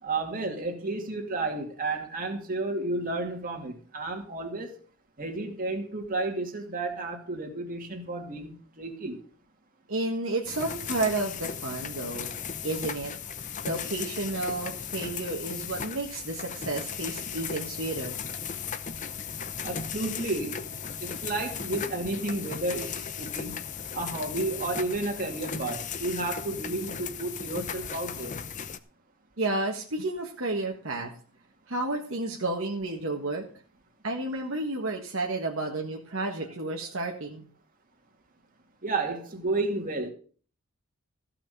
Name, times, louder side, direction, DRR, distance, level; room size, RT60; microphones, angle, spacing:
voice 1, 0.0-4.8 5.2-9.2 19.6-20.6 21.0-23.6 23.9-28.5 38.8-40.1, right 2 dB, 40° right, 3 dB, 2.4 m, -32 dB
voice 2, 9.9-12.3 12.6-13.1 13.6-18.2 29.4-31.1 31.7-33.4 34.0-37.4, right 2 dB, 60° right, 1 dB, 1.5 m, -31 dB
sound 1, 10.4-28.8, left 7 dB, 35° left, 0.7 m, -36 dB
15.0 x 5.9 x 7.0 m, 0.42 s
head